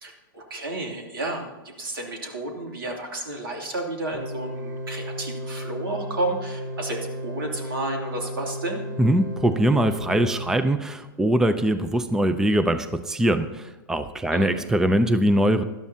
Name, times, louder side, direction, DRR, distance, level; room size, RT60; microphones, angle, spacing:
voice 1, 0.0-8.8 14.3-14.5, right 2 dB, 90° right, 1 dB, 3.0 m, -32 dB
sound 1, 4.1-10.5, equal, 55° right, 4.4 m, -34 dB
voice 2, 9.0-15.6, right 1 dB, 5° right, 11 dB, 0.5 m, -22 dB
17.5 x 12.0 x 2.8 m, 1.2 s
hypercardioid pair, 130°, 11 cm